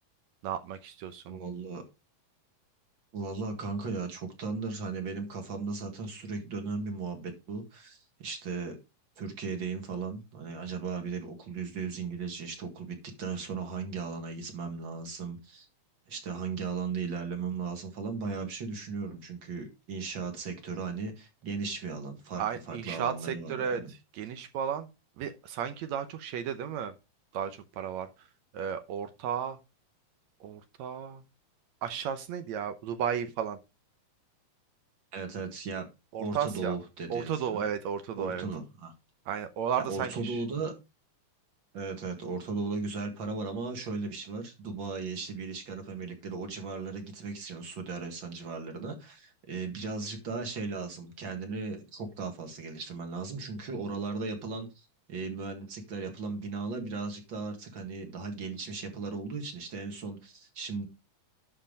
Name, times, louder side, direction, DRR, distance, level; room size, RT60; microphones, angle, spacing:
voice 1, 0.4-1.4 22.4-24.9 25.2-27.0 27.3-28.3 28.5-29.6 30.4-31.2 31.8-33.6 36.1-36.8 37.1-38.5 39.3-40.4, right 8 dB, 70° right, 9 dB, 2.0 m, -34 dB
voice 2, 1.3-1.8 3.1-8.8 9.2-15.7 16.1-23.9 35.1-35.9 36.2-37.6 38.2-38.9 39.8-40.7 41.7-60.9, right 4 dB, 40° right, 5 dB, 2.3 m, -36 dB
11.5 x 4.6 x 5.1 m, 0.27 s
omnidirectional pair, 3.6 m